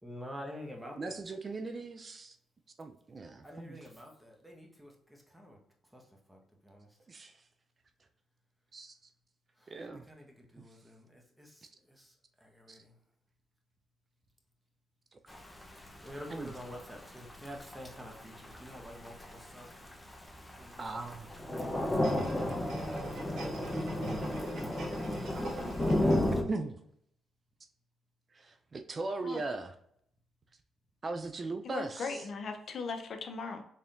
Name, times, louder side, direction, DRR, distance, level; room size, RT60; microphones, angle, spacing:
voice 1, 0.0-1.2 3.4-5.6 5.9-6.0 6.3-6.9 9.6-9.7 10.1-12.1 12.4-12.9 15.9-19.7 20.6-20.8, equal, 10° right, 0 dB, 1.2 m, -48 dB
voice 2, 1.0-2.4 2.8-3.8 7.1-7.4 8.7-8.9 9.7-10.1 10.6-10.7 12.7-12.8 15.1-15.2 16.3-16.5 20.8-21.3 25.1-25.6 25.9-26.8 28.3-29.7 31.0-32.2, right 3 dB, 40° right, 7 dB, 0.4 m, -39 dB
Thunder / Rain, 15.3-26.4, left 1 dB, 15° left, 0.7 m, -33 dB
sound 1, 22.0-26.4 26.8-26.9, right 2 dB, 75° right, 1.3 m, -46 dB
voice 3, 31.6-33.6, left 4 dB, 60° left, 5 dB, 0.6 m, -38 dB
4.3 x 3.4 x 2.5 m, 0.71 s
supercardioid pair, 65°, 0 cm